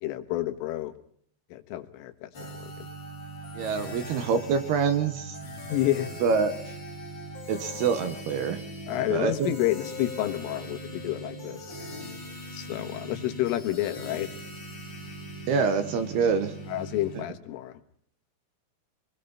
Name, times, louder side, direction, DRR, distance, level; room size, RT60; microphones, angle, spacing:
voice 1, 0.0-0.9 1.5-2.3 2.6-2.7 5.7-6.1 8.9-11.8 12.5-14.3 16.7-17.8, left 14 dB, 85° left, 8 dB, 4.0 m, -29 dB
sound 1, 2.3-17.2, equal, 30° left, 3.0 m, -40 dB
voice 2, 3.5-5.4 6.2-6.7 7.5-8.6 9.1-9.5 15.5-16.5, right 5 dB, 70° right, 10 dB, 2.8 m, -26 dB
26.0 x 21.0 x 5.5 m, 0.62 s
omnidirectional pair, 5.7 m